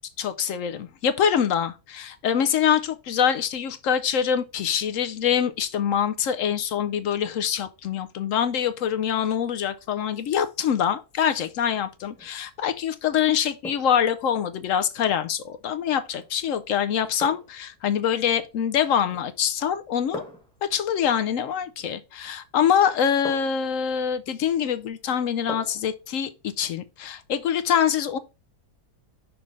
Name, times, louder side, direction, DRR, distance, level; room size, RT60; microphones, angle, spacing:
voice 1, 0.2-20.2 20.6-26.3 26.6-28.2, left 8 dB, 70° left, 0.8 m, -24 dB
sound 1, 12.1-12.4 13.6-14.1 16.1-16.3 17.2-17.7 19.0-19.4 20.1-20.6 22.2-22.4 23.2-23.7 25.5-25.9 26.3-26.4, equal, 5° left, 1.1 m, -39 dB
6.0 x 3.2 x 5.2 m
omnidirectional pair, 1.6 m